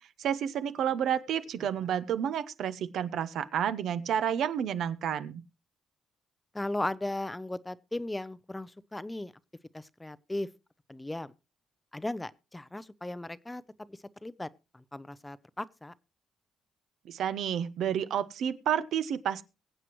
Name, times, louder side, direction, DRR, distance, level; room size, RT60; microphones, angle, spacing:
voice 1, 0.2-5.4 17.0-19.4, right 9 dB, 75° right, 0.7 m, -30 dB
voice 2, 6.5-9.3 9.7-10.5 10.9-11.3 11.9-13.6 13.9-15.9, left 1 dB, 15° left, 0.6 m, -37 dB
22.5 x 7.8 x 3.0 m
cardioid pair, 85°, 0 cm